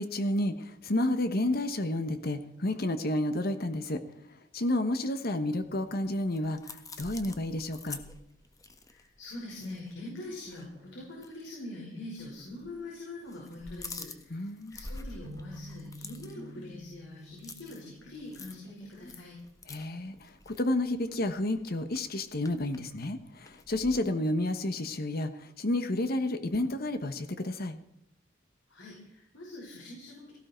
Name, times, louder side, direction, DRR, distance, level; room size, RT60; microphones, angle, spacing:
voice 1, 0.0-4.0 4.5-6.6 7.0-8.0 14.3-14.8 19.7-27.8, left 1 dB, 55° left, 9 dB, 1.2 m, -30 dB
sound 1, 5.7-10.2 10.4-10.6 11.1-11.3 12.2-12.8 13.1-23.9, left 3 dB, 20° left, 1.4 m, -47 dB
voice 2, 8.9-19.4 28.7-30.3, left 2 dB, 90° left, -3 dB, 5.4 m, -44 dB
sound 2, 15.2-19.3, equal, 50° right, 1.8 m, -49 dB
18.0 x 16.0 x 4.5 m, 0.82 s
head